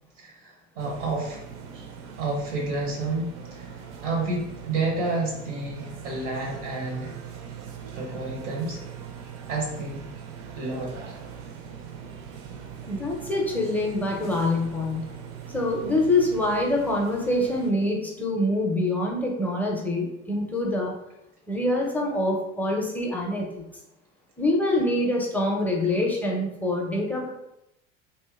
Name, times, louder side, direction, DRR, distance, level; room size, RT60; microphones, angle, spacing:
voice 1, 0.2-1.4 1.7-1.9 2.2-3.8 4.0-7.1 7.9-8.8 9.5-10.1 10.5-10.9, right 2 dB, 85° right, -1 dB, 0.8 m, -30 dB
sound 1, 0.8-17.7, right 7 dB, 50° right, 0.5 m, -41 dB
voice 2, 12.8-15.1 15.5-20.9 21.5-23.6 24.4-27.3, left 1 dB, 5° left, -1 dB, 0.5 m, -25 dB
2.7 x 2.2 x 2.3 m, 0.85 s
hypercardioid pair, 75°, 37 cm